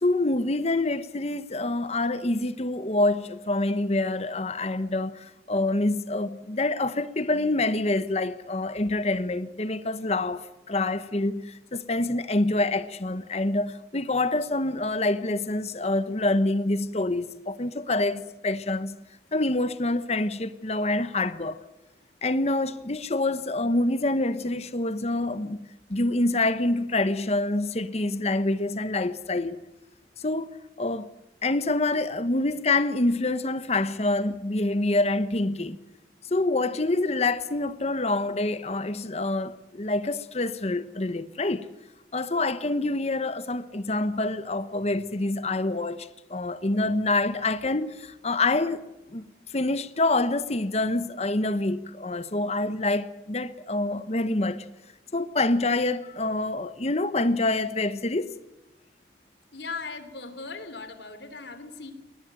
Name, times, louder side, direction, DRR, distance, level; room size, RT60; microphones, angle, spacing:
voice 1, 0.0-19.0 19.3-21.6 22.2-29.6 30.2-30.5 30.8-31.1 31.4-35.8 36.3-41.7 42.1-48.8 49.1-49.2 49.5-54.6 55.1-58.3, left 2 dB, 35° left, 1.0 m, -26 dB
voice 2, 59.5-61.9, left 4 dB, 75° left, 3.0 m, -38 dB
21.5 x 19.0 x 9.0 m
head